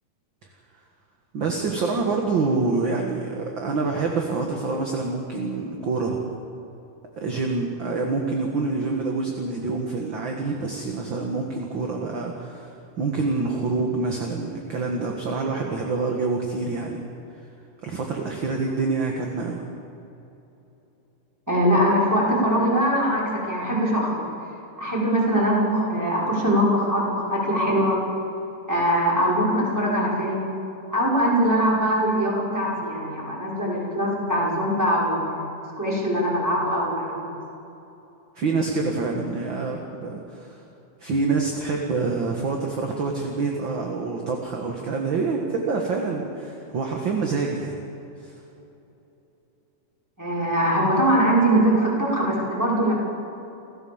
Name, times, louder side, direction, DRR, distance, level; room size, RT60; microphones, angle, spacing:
voice 1, 1.3-6.2 7.2-17.0 17.8-19.6 38.4-40.6 41.0-47.8 48.2-48.3, right 4 dB, 45° right, 1 dB, 1.9 m, -26 dB
voice 2, 21.5-24.3 24.8-28.0 28.7-30.5 30.9-35.5 35.8-37.2 50.2-52.9, equal, 5° right, -6 dB, 5.7 m, -22 dB
29.5 x 15.0 x 7.3 m, 3.0 s
omnidirectional pair, 3.7 m